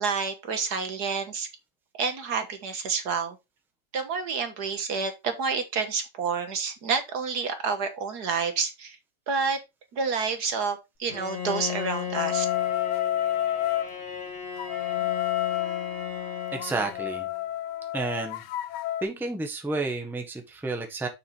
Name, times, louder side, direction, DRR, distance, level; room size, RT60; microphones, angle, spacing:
voice 1, 0.0-1.5 2.0-3.4 3.9-9.0 9.3-9.6 9.9-12.5, right 5 dB, 70° right, 1.9 m, -29 dB
Bowed string instrument, 11.1-17.4, left 8 dB, 35° left, 2.3 m, -36 dB
sound 1, 12.1-13.9 14.6-19.0, left 13 dB, 80° left, 1.2 m, -29 dB
voice 2, 16.5-17.3 17.9-18.4 19.0-21.1, right 3 dB, ahead, 1.2 m, -31 dB
7.3 x 6.5 x 3.3 m
omnidirectional pair, 1.8 m